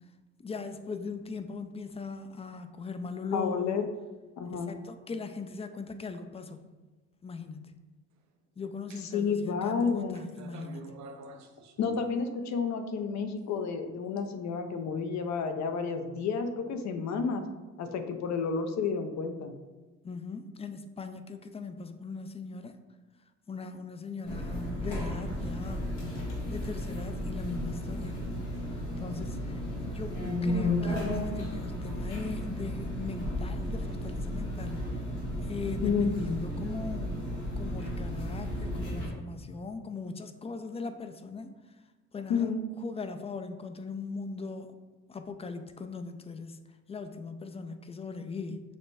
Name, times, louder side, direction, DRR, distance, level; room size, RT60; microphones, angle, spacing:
voice 1, 0.4-3.8 4.5-6.6 7.2-7.7 8.6-10.9 20.0-22.8 23.5-25.8 26.5-28.1 29.0-29.6 29.9-35.0 35.5-37.2 37.6-41.5 42.1-44.7 45.1-46.6 46.9-48.6, left 4 dB, 20° left, 8 dB, 0.3 m, -39 dB
voice 2, 3.3-3.8 4.4-4.7 9.1-10.3 11.8-17.4 17.8-19.5 35.8-36.1 42.3-42.6, left 5 dB, 65° left, 7 dB, 0.6 m, -30 dB
sound 1, 8.9-9.3 9.8-12.5 13.4-14.2, right 3 dB, 65° right, 0.5 m, -49 dB
sound 2, 24.2-39.1, left 1 dB, 90° left, 1.4 m, -34 dB
6.4 x 2.2 x 3.3 m, 1.2 s
cardioid pair, 90°, 30 cm